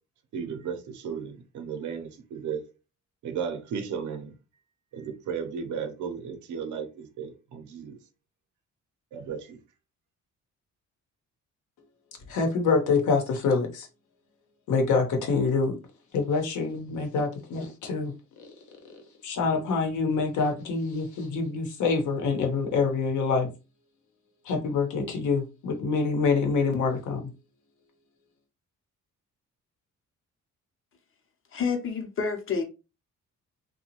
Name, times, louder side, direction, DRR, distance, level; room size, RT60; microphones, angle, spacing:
voice 1, 0.3-2.6 3.2-4.3 4.9-7.9 9.1-9.6, right 6 dB, 75° right, 0.7 m, -35 dB
voice 2, 12.3-13.9 14.7-15.8 16.1-18.5 18.9-23.5 24.4-27.3, left 4 dB, 75° left, 0.9 m, -26 dB
voice 3, 31.5-32.6, left 5 dB, 45° left, 0.8 m, -28 dB
2.7 x 2.3 x 2.9 m
cardioid pair, 90°, 30 cm